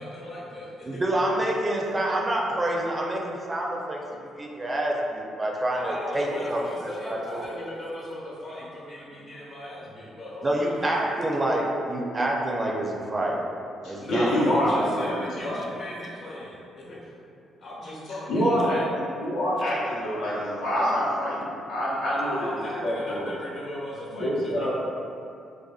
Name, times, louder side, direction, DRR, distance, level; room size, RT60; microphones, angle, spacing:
voice 1, 0.0-1.0 5.8-10.9 14.0-17.1 17.6-18.9 22.0-24.7, left 1 dB, 60° left, -6 dB, 0.9 m, -37 dB
voice 2, 0.9-4.0 4.4-7.5 10.4-13.4 13.8-14.4, right 1 dB, 25° right, -2 dB, 0.4 m, -27 dB
voice 3, 13.8-15.6 18.3-23.3 24.1-24.7, equal, 90° left, -8 dB, 0.6 m, -26 dB
2.5 x 2.3 x 2.3 m, 2.6 s
cardioid pair, 75°, 0 cm